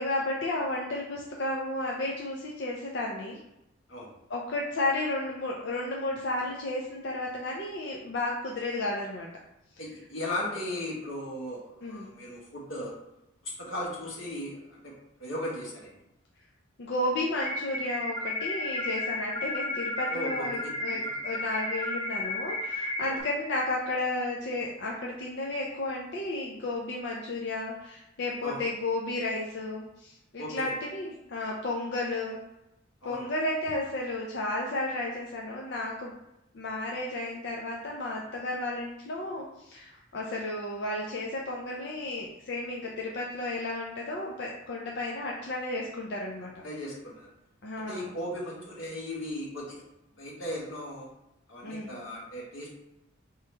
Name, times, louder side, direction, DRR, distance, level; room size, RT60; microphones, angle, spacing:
voice 1, 0.0-3.4 4.3-9.3 11.8-12.2 16.8-32.4 33.0-36.1 36.5-46.5 47.6-48.1 51.6-52.0, left 2 dB, 60° left, -2 dB, 0.5 m, -33 dB
voice 2, 9.8-12.9 13.4-14.9 15.2-15.9 20.1-21.1 23.0-23.2 28.4-28.6 30.4-30.7 33.0-33.2 46.6-47.3 47.9-49.8 50.2-51.1 51.5-52.7, left 1 dB, 85° left, -4 dB, 1.5 m, -37 dB
sound 1, 17.4-23.2, left 1 dB, 25° left, 0.7 m, -33 dB
4.6 x 3.0 x 3.3 m, 0.89 s
head